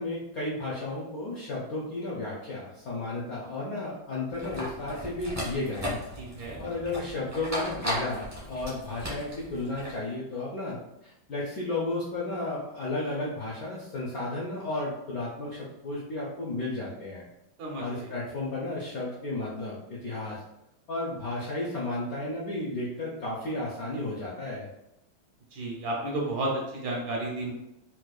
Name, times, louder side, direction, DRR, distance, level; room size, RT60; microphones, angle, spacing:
voice 1, 0.0-6.0 6.6-17.2 17.8-20.4 20.9-24.7, left 2 dB, 75° left, -5 dB, 0.8 m, -33 dB
sound 1, 4.3-10.0, equal, 20° right, 0.4 m, -36 dB
voice 2, 6.2-6.6 17.6-18.1 25.5-27.5, right 1 dB, 70° right, -2 dB, 1.5 m, -32 dB
4.4 x 2.2 x 2.3 m, 0.87 s
omnidirectional pair, 2.2 m